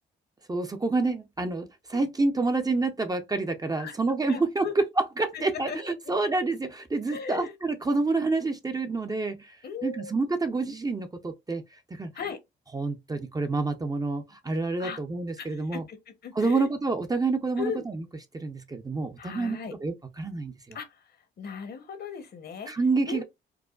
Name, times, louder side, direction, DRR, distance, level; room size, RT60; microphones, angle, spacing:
voice 1, 0.5-9.6 9.8-11.6 11.9-12.1 12.7-15.8 16.4-18.0 18.3-20.8 22.7-23.2, right 3 dB, 20° right, 0.6 m, -28 dB
voice 2, 4.3-4.7 5.3-5.8 7.1-7.5 9.6-10.1 12.1-12.4 14.8-15.0 15.4-16.7 17.6-17.8 19.2-19.7 20.7-21.1 21.4-22.7 23.1-23.2, left 6 dB, 55° left, 0.9 m, -37 dB
4.6 x 2.1 x 2.4 m
cardioid pair, 90°, 20 cm